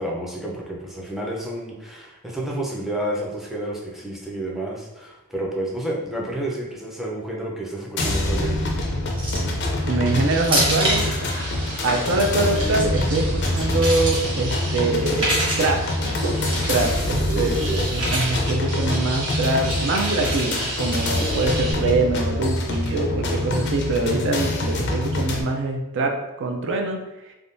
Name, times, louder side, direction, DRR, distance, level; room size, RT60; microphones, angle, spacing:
voice 1, 0.0-8.7 17.3-17.9, right 1 dB, ahead, -3 dB, 0.5 m, -30 dB
sound 1, 8.0-25.4, left 1 dB, 50° left, 0.5 m, -25 dB
sound 2, 9.2-9.5 10.4-11.1 12.5-12.8 13.4-14.2 15.0-15.7 16.6-17.0 17.9-18.4 19.9-20.5, right 1 dB, 25° right, 1.0 m, -25 dB
sound 3, 9.7-21.7, right 1 dB, 80° right, 0.9 m, -33 dB
voice 2, 9.9-11.0 11.8-15.8 16.7-27.0, right 2 dB, 55° right, 3 dB, 0.4 m, -24 dB
3.5 x 2.2 x 2.5 m, 0.97 s
head